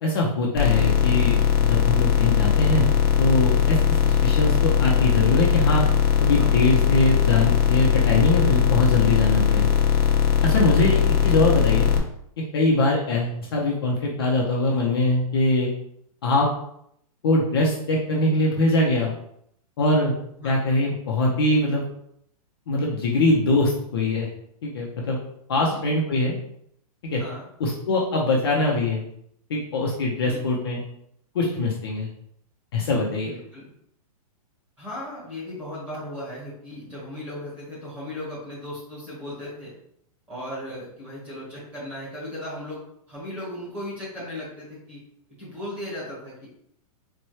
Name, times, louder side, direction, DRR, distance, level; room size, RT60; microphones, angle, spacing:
voice 1, 0.0-2.9 3.2-5.8 6.2-9.7 10.4-11.9 12.5-15.7 16.2-16.5 17.2-19.1 19.8-20.1 20.4-21.8 22.7-24.3 24.6-25.2 25.5-26.3 27.0-27.2 27.6-29.0 29.5-30.8 31.3-32.1 32.7-33.3, left 2 dB, 40° left, -2 dB, 0.6 m, -22 dB
sound 1, 0.5-12.0, left 8 dB, 75° left, 0.8 m, -20 dB
voice 2, 27.1-27.4 30.2-30.4 33.2-33.7 34.8-39.7 40.3-42.8 43.1-45.0 45.4-46.5, left 1 dB, 5° right, -9 dB, 1.1 m, -36 dB
4.2 x 2.2 x 3.1 m, 0.71 s
hypercardioid pair, 180°, 19 cm